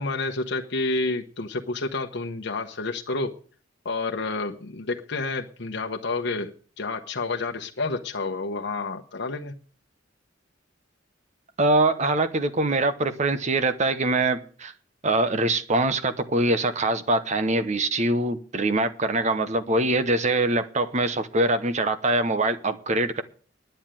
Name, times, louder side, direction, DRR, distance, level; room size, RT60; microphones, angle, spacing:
voice 1, 0.0-3.3 3.8-6.5 6.8-9.6, left 3 dB, 65° left, 2 dB, 1.0 m, -29 dB
voice 2, 11.6-14.7 15.0-23.2, right 2 dB, 40° right, 11 dB, 0.9 m, -23 dB
10.5 x 7.9 x 8.9 m, 0.43 s
head